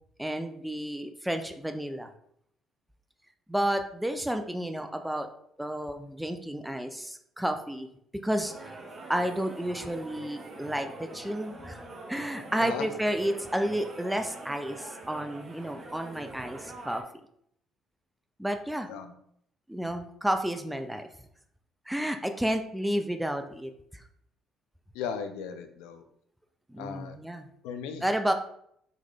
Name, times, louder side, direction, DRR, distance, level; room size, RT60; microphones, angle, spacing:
voice 1, 0.2-2.1 3.5-5.3 5.6-7.9 8.2-8.7 9.1-11.8 12.1-17.0 18.4-18.9 19.7-21.1 21.9-24.0 26.7-27.5 28.0-28.3, right 1 dB, 5° right, 6 dB, 0.4 m, -31 dB
sound 1, 8.4-17.0, right 2 dB, 40° right, 0.7 m, -44 dB
voice 2, 24.9-26.0 26.8-27.2 27.6-28.0, left 7 dB, 80° left, 8 dB, 0.3 m, -36 dB
3.8 x 3.1 x 2.3 m, 0.69 s
hypercardioid pair, 55°, 0 cm